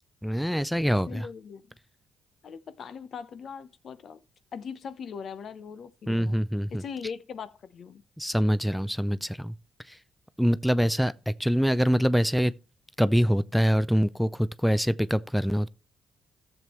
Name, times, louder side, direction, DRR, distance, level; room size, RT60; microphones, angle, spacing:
voice 1, 0.2-1.3 6.1-6.8 8.2-9.5 10.4-12.5 13.0-15.7, equal, ahead, 0.4 m, -24 dB
voice 2, 1.1-1.6 2.4-4.2 4.5-6.4 6.7-8.0, left 6 dB, 55° left, 0.8 m, -40 dB
14.0 x 7.5 x 3.1 m
cardioid pair, 90°, 0 cm